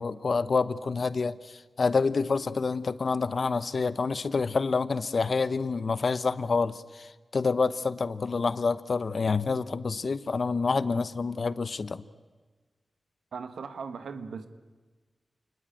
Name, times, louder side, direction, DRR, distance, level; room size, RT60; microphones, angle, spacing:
voice 1, 0.0-12.0, left 4 dB, 60° left, 15 dB, 1.0 m, -28 dB
voice 2, 13.3-14.5, right 5 dB, 90° right, 10 dB, 1.6 m, -38 dB
28.5 x 20.5 x 9.1 m, 1.3 s
cardioid pair, 65°, 0 cm